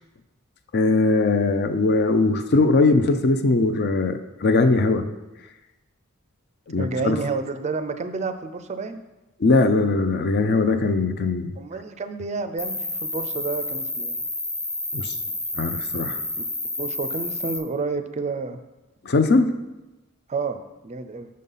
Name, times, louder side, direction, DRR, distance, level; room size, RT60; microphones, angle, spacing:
voice 1, 0.7-5.1 6.7-7.2 9.4-11.6 14.9-15.1 15.5-16.2 19.1-19.5, left 3 dB, 50° left, 9 dB, 0.5 m, -20 dB
voice 2, 6.8-9.0 11.6-14.2 16.8-18.6 20.3-21.3, right 4 dB, 30° right, 9 dB, 0.4 m, -30 dB
Cricket, 12.6-17.6, left 2 dB, 10° left, 0.8 m, -30 dB
6.5 x 5.5 x 5.5 m, 1.0 s
head